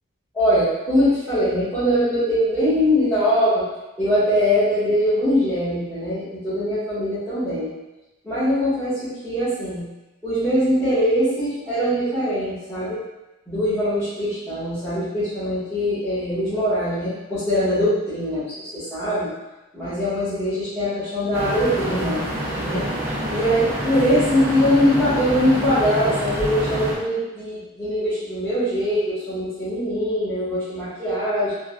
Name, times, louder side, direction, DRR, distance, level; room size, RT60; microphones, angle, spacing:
voice 1, 0.3-3.7 4.0-7.7 8.2-9.9 10.2-13.0 13.5-19.3 19.7-22.2 22.6-22.9 23.3-31.5, equal, 10° left, -18 dB, 1.2 m, -22 dB
sound 1, 21.3-26.9, right 1 dB, 10° right, 0.5 m, -27 dB
3.4 x 2.2 x 2.2 m, 1.0 s
head